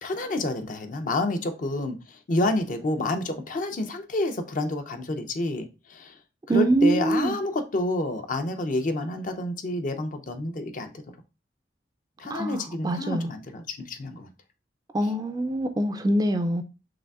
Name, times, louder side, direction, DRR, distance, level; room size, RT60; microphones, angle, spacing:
voice 1, 0.0-6.2 6.5-10.9 12.2-14.3, left 2 dB, 45° left, 0.5 m, -29 dB
voice 2, 6.5-7.4 12.3-13.3 14.9-16.6, right 1 dB, 20° right, 0.3 m, -24 dB
4.9 x 3.3 x 2.3 m
head